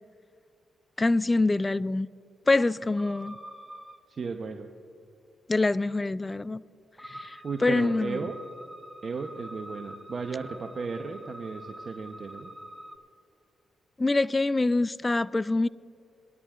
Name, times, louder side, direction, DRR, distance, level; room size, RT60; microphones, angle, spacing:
voice 1, 1.0-2.1 2.5-3.4 5.5-6.6 7.0-8.2 14.0-15.7, left 2 dB, 25° left, 0.3 m, -25 dB
sound 1, 3.0-4.0 7.0-13.0, equal, 5° right, 1.0 m, -45 dB
voice 2, 4.1-4.7 7.4-8.3 9.0-12.5, right 4 dB, 50° right, 0.8 m, -34 dB
19.5 x 12.5 x 2.4 m
supercardioid pair, 55°, 0 cm